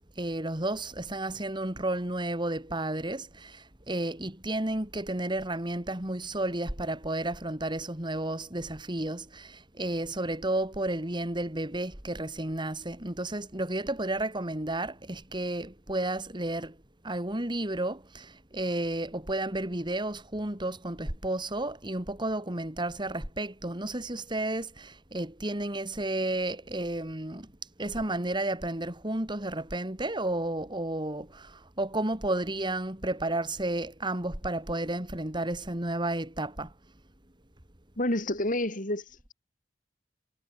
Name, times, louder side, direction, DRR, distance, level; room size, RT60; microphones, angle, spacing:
voice 1, 0.2-16.8 17.0-27.5 27.8-36.7, right 1 dB, 25° right, 2.9 m, -32 dB
voice 2, 38.0-39.0, left 1 dB, 50° left, 6.5 m, -28 dB
head